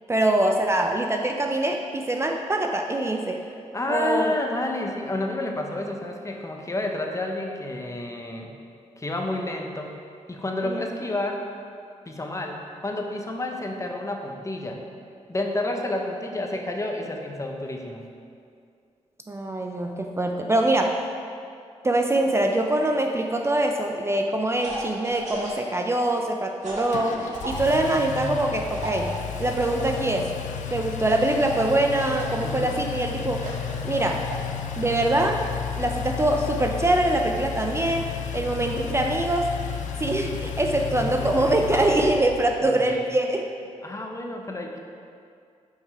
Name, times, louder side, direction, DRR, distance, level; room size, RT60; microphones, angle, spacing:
voice 1, 0.1-3.4 3.9-4.3 10.6-10.8 19.3-21.0 21.8-29.1 29.4-30.3 30.7-33.5 33.8-34.3 34.8-35.4 35.8-39.5 40.0-43.4, right 1 dB, 20° right, 3 dB, 0.4 m, -24 dB
voice 2, 3.7-8.5 9.0-9.9 10.3-11.5 12.1-14.8 15.3-18.0 32.4-32.8 40.8-41.5 42.8-43.1 43.8-44.8, left 2 dB, 25° left, 2 dB, 0.8 m, -30 dB
sound 1, 24.6-25.6 26.6-27.6 28.7-30.0 31.1-32.4 33.4-34.4, right 2 dB, 70° right, 1.7 m, -35 dB
Engine, 26.9-42.6, left 7 dB, 80° left, 0.4 m, -33 dB
5.5 x 4.9 x 4.7 m, 2.3 s
cardioid pair, 70°, 12 cm